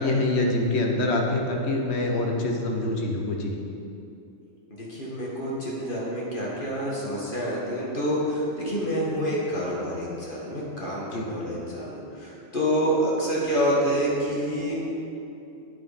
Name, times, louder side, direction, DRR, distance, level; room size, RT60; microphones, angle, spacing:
voice 1, 0.0-3.5 11.1-11.3, left 2 dB, 60° left, 1 dB, 1.4 m, -25 dB
voice 2, 4.7-14.8, equal, 40° left, -5 dB, 2.1 m, -27 dB
9.2 x 9.2 x 4.3 m, 2.7 s
omnidirectional pair, 1.3 m